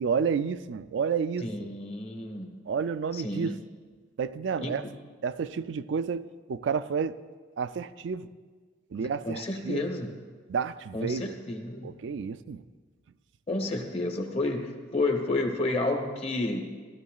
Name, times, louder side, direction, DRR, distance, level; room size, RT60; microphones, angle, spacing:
voice 1, 0.0-1.7 2.7-3.6 4.2-4.8 5.2-7.1 7.6-8.3 8.9-9.8 10.5-11.3 11.8-12.6, right 6 dB, 65° right, 0.3 m, -30 dB
voice 2, 1.4-2.6 3.1-3.6 4.6-5.0 9.0-10.2 10.9-12.0 13.5-16.6, left 2 dB, 30° left, 1.0 m, -31 dB
15.5 x 12.5 x 2.4 m
head